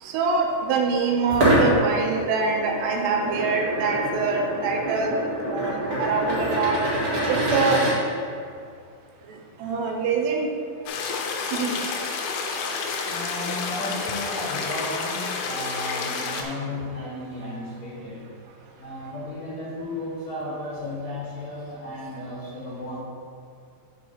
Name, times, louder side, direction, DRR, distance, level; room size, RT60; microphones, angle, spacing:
voice 1, 0.0-5.2 5.5-5.7 6.0-6.8 7.3-7.8 9.6-10.5 11.5-11.8, right 4 dB, 85° right, 2 dB, 3.0 m, -24 dB
sound 1, 1.3-7.9, right 1 dB, 45° right, 2.0 m, -25 dB
sound 2, 10.9-16.4, left 4 dB, 85° left, 2.8 m, -29 dB
voice 2, 13.1-18.3 18.7-23.0, left 1 dB, 50° left, -9 dB, 2.8 m, -34 dB
7.3 x 4.6 x 5.7 m, 2.3 s
omnidirectional pair, 4.8 m